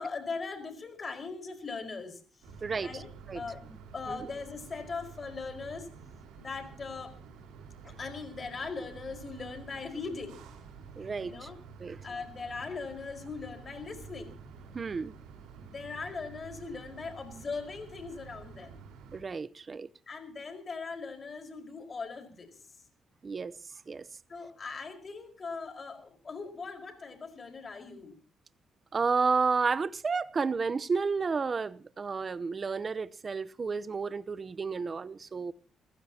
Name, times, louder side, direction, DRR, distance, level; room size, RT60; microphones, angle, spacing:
voice 1, 0.0-2.2 2.7-3.1 3.3-5.9 6.4-7.2 7.8-10.4 11.2-11.6 12.0-14.4 15.6-18.8 20.1-22.6 24.3-28.2, left 4 dB, 35° left, 4.8 m, -40 dB
sound 1, 2.4-19.2, right 5 dB, 90° right, 4.5 m, -50 dB
voice 2, 11.0-11.5 11.8-12.0 14.7-15.1 19.1-19.9 23.2-23.5 23.9-24.0 28.9-35.5, right 4 dB, 35° right, 0.8 m, -31 dB
28.5 x 15.5 x 2.9 m
cardioid pair, 90°, 0 cm